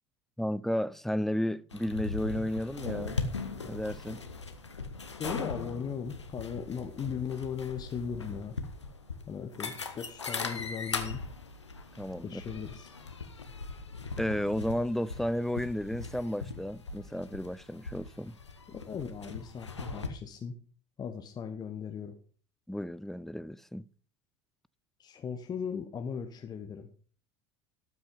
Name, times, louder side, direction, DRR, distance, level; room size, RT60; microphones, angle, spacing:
voice 1, 0.4-3.2 3.6-4.2 12.0-12.4 14.2-18.3 22.7-23.8, equal, ahead, 0.4 m, -33 dB
sound 1, 1.7-20.1, left 4 dB, 85° left, 1.0 m, -39 dB
voice 2, 5.2-8.6 9.3-11.2 12.2-12.9 18.7-20.6 21.0-22.2 25.0-26.9, left 7 dB, 30° left, 1.0 m, -38 dB
12.5 x 6.1 x 5.3 m
figure-of-eight pair, 70°, 14 cm